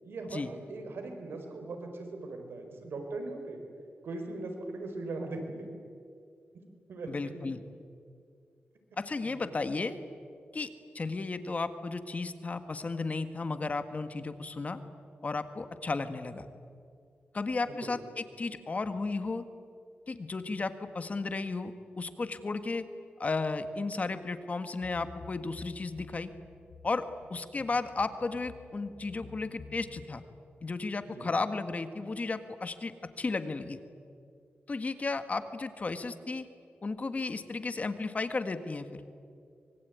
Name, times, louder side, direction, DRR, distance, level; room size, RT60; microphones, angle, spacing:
voice 1, 0.0-3.6 4.0-5.7 6.5-6.6 6.9-7.2 9.2-9.5 17.6-17.9 31.1-31.3, right 2 dB, 85° right, 4 dB, 4.7 m, -39 dB
voice 2, 7.1-7.6 9.0-10.0 10.5-10.7 10.9-14.8 15.2-16.4 17.3-18.0 18.4-19.5 20.1-22.9 23.2-26.3 26.8-30.2 30.6-33.8 34.7-36.5 36.8-39.0, left 3 dB, 40° left, 10 dB, 1.7 m, -34 dB
sound 1, 24.8-30.0, left 3 dB, 65° left, 5.3 m, -51 dB
24.5 x 23.0 x 9.4 m, 2.4 s
wide cardioid pair, 95°, 4 cm